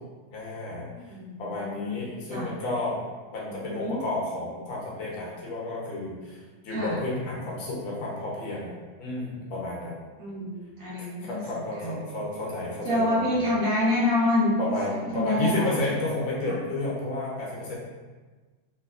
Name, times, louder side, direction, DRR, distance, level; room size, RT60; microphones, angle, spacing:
voice 1, 0.3-3.0 3.3-8.7 9.0-9.9 11.2-13.5 14.6-17.7, left 2 dB, 80° left, -5 dB, 1.7 m, -31 dB
voice 2, 0.9-2.5 3.4-4.0 6.7-6.9 10.2-11.4 11.8-12.1 12.8-14.7 15.1-15.7 16.4-16.6, left 1 dB, 55° right, -7 dB, 1.1 m, -27 dB
3.3 x 3.2 x 2.4 m, 1.3 s
omnidirectional pair, 2.1 m